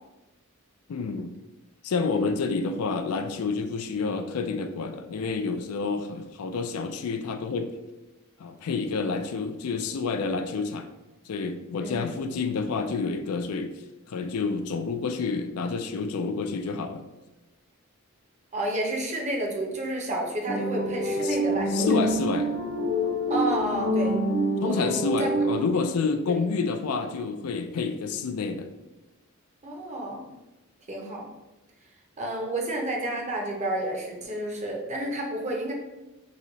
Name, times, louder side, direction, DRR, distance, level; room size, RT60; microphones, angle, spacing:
voice 1, 0.9-1.3 1.8-7.7 8.4-10.9 11.3-13.7 14.1-17.0 21.2-21.4 21.7-22.5 24.6-28.7, left 4 dB, 85° left, 8 dB, 0.4 m, -29 dB
voice 2, 18.5-21.9 23.3-24.2 24.6-25.4 26.3-26.4 29.6-30.3 30.9-31.3 32.2-35.7, right 1 dB, 35° right, 0 dB, 0.7 m, -30 dB
sound 1, 20.5-25.9, equal, 80° right, 1.1 m, -27 dB
3.1 x 2.7 x 3.9 m, 1.0 s
head